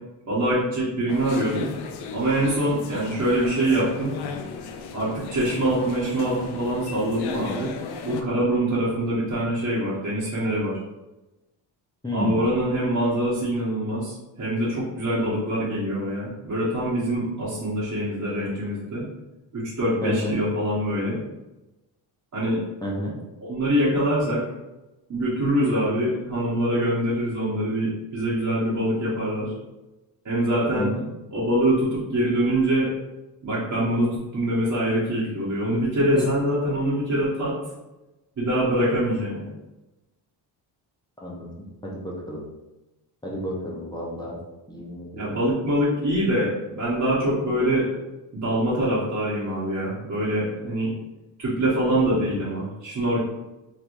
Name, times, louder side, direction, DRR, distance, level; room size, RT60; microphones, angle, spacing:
voice 1, 0.3-1.7 2.1-4.1 4.9-7.7 8.0-10.8 12.1-19.0 19.5-21.2 22.3-22.6 23.4-24.4 25.1-29.5 30.2-30.9 31.3-32.9 33.4-37.5 38.4-39.5 45.2-47.9 48.3-50.9 51.4-53.2, right 1 dB, 35° right, -8 dB, 1.3 m, -24 dB
sound 1, 1.1-8.2, left 5 dB, 60° left, 0.6 m, -36 dB
voice 2, 12.0-12.4 20.0-20.3 22.8-23.1 30.8-31.1 36.2-36.3 41.2-41.5 41.8-42.4 43.2-44.4 44.7-45.4 51.9-52.4, left 1 dB, 10° left, -5 dB, 0.8 m, -30 dB
3.1 x 3.1 x 2.6 m, 1.0 s
cardioid pair, 85°, 46 cm